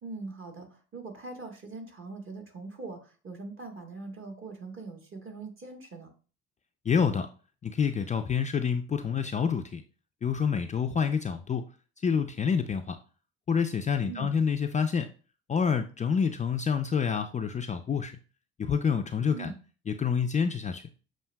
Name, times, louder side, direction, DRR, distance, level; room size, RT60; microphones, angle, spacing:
voice 1, 0.0-6.1 14.0-14.3 19.3-19.6, right 3 dB, 40° right, 3 dB, 1.4 m, -42 dB
voice 2, 6.9-7.3 7.6-9.8 10.2-11.7 12.0-13.0 13.5-15.1 15.5-18.1 18.6-19.5 19.9-20.8, left 6 dB, 25° left, 7 dB, 0.4 m, -27 dB
7.0 x 2.6 x 2.2 m, 0.36 s
hypercardioid pair, 65°, 30 cm